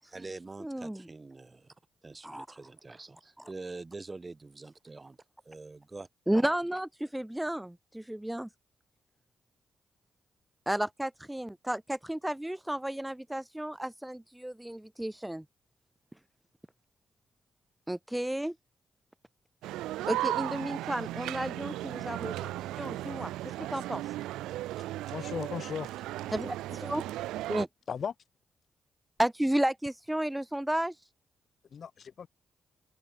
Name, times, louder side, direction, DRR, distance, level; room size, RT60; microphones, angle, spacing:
voice 1, 0.1-1.8 2.0-5.2 5.4-6.1, right 3 dB, 30° right, 1.9 m, -45 dB
voice 2, 0.6-1.0 2.2-2.5 6.3-8.5 10.7-15.4 17.9-18.5 20.1-23.3 23.7-24.0 26.3-27.1 27.5-27.7 29.2-31.0, right 1 dB, 10° right, 0.5 m, -32 dB
sound 1, 19.6-27.6, right 15 dB, 80° right, 0.4 m, -36 dB
voice 3, 25.1-26.0 27.9-28.1 31.7-32.3, left 7 dB, 60° left, 4.7 m, -36 dB
open air
hypercardioid pair, 40°, 0 cm